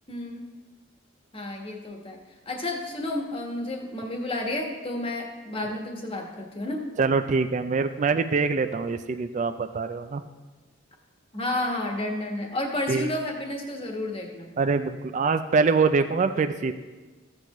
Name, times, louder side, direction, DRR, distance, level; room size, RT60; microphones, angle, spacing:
voice 1, 0.1-0.5 1.3-2.2 2.5-6.8 11.3-14.5, left 1 dB, 25° left, 1 dB, 1.3 m, -31 dB
voice 2, 7.0-10.2 12.9-13.1 14.6-16.7, right 4 dB, 35° right, 9 dB, 0.3 m, -24 dB
14.5 x 7.8 x 3.0 m, 1.2 s
head